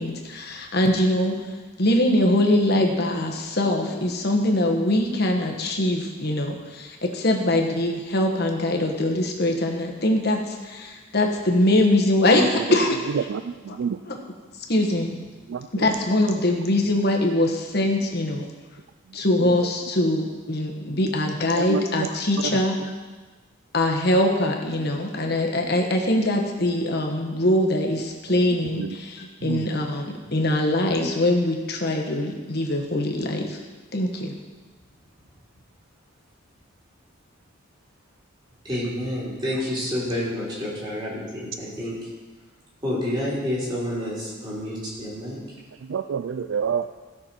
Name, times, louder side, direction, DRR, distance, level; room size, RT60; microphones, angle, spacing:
voice 1, 0.0-1.3 1.8-13.0 14.1-14.2 14.7-15.2 15.7-18.5 19.1-22.8 23.7-33.6 33.9-34.4, left 1 dB, 50° left, 2 dB, 1.3 m, -22 dB
voice 2, 13.1-14.0 15.5-15.9 19.4-19.7 21.6-22.1 22.4-22.6 28.7-29.0 29.4-29.7 45.9-46.9, right 7 dB, 65° right, 9 dB, 0.3 m, -28 dB
voice 3, 38.6-42.0 42.8-45.4, left 1 dB, 20° right, -7 dB, 3.5 m, -29 dB
16.0 x 6.3 x 4.4 m, 1.3 s
head